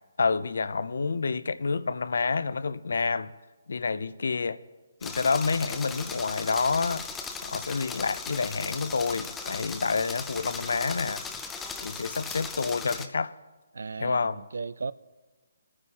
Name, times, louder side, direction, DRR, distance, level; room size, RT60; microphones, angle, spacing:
voice 1, 0.2-3.3 3.7-4.6 5.0-7.0 7.4-11.2 11.8-13.3 14.0-14.4, left 4 dB, 75° left, 0.5 m, -28 dB
sound 1, 5.0-13.1, left 5 dB, 5° left, 0.4 m, -38 dB
voice 2, 13.7-14.9, right 4 dB, 80° right, 0.4 m, -35 dB
26.0 x 9.6 x 2.9 m
hypercardioid pair, 170°, 0 cm